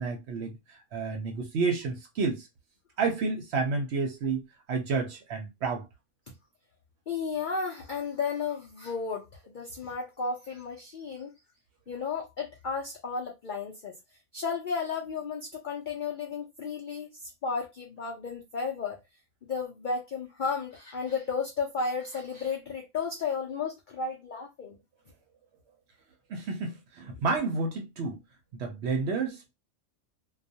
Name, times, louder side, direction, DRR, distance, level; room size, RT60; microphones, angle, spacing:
voice 1, 0.0-2.5 3.0-5.9 26.3-28.2 28.5-29.5, right 4 dB, 65° right, 0.8 m, -30 dB
voice 2, 7.1-11.3 11.9-13.9 14.3-19.0 19.5-24.8, left 5 dB, 70° left, 0.4 m, -33 dB
2.3 x 2.2 x 2.6 m
omnidirectional pair, 1.4 m